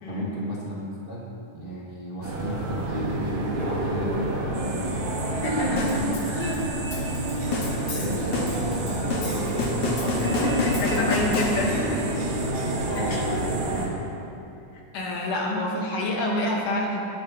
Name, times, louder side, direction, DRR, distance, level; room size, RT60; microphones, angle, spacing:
voice 1, 0.1-5.0 5.5-6.3 7.9-11.7 12.9-14.3, equal, 30° right, -5 dB, 1.0 m, -34 dB
sound 1, 2.2-13.9, right 1 dB, 45° right, 2.3 m, -29 dB
sound 2, 4.5-13.9, right 2 dB, 70° right, 3.0 m, -36 dB
voice 2, 5.3-6.7 10.2-12.1 13.0-13.4 14.9-17.0, left 1 dB, 75° left, -2 dB, 3.4 m, -28 dB
sound 3, 5.8-12.0, left 3 dB, 55° left, 2.2 m, -31 dB
20.5 x 10.0 x 4.2 m, 2.8 s
omnidirectional pair, 3.7 m